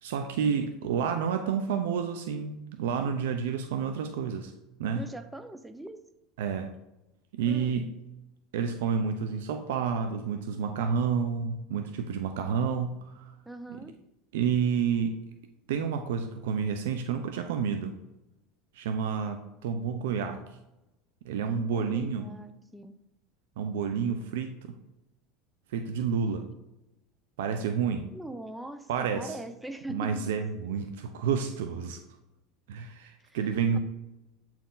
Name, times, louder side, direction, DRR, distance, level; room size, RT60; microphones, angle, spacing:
voice 1, 0.0-4.5 4.8-5.1 6.4-6.7 7.3-7.9 8.5-13.3 13.7-13.8 14.3-15.2 15.7-17.9 18.7-20.4 21.2-22.3 23.6-24.6 25.7-26.4 27.4-28.1 28.9-29.4 29.9-32.0 32.7-33.8, right 6 dB, 85° right, 7 dB, 0.6 m, -29 dB
voice 2, 5.0-6.0 7.5-7.7 13.5-14.0 21.5-22.9 28.1-30.2 33.2-33.4 33.7-33.8, right 1 dB, 5° right, 10 dB, 0.5 m, -42 dB
8.2 x 4.5 x 3.9 m, 0.93 s
supercardioid pair, 130°, 0 cm